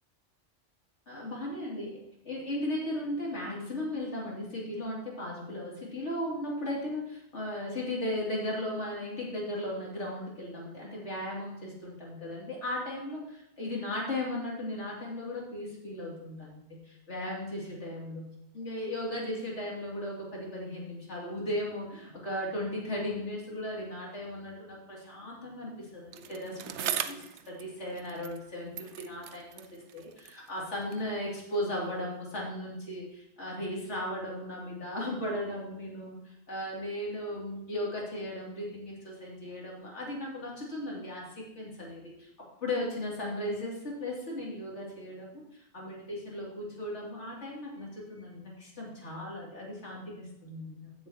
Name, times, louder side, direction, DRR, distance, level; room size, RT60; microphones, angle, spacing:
voice 1, 1.1-18.2 18.5-29.6 29.9-42.3 42.6-45.3 45.5-50.9, left 1 dB, 80° left, -4 dB, 3.1 m, -36 dB
Bicycle, 26.1-28.5 28.7-31.1 31.9-32.0, right 9 dB, 75° right, 0.9 m, -39 dB
15.0 x 7.2 x 2.9 m, 0.83 s
omnidirectional pair, 1.2 m